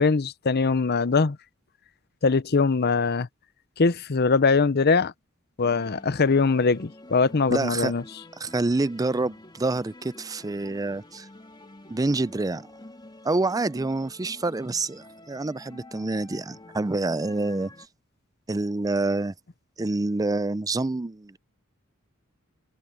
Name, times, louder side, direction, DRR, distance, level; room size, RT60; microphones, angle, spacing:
voice 1, 0.0-1.4 2.2-3.3 3.8-5.1 5.6-8.0, left 4 dB, 50° left, 0.7 m, -22 dB
sound 1, 5.6-17.9, left 1 dB, 20° left, 2.0 m, -48 dB
voice 2, 7.5-7.9 8.4-11.3 11.9-12.7 13.2-17.7 18.5-19.3 19.8-21.4, right 2 dB, 15° right, 0.5 m, -27 dB
head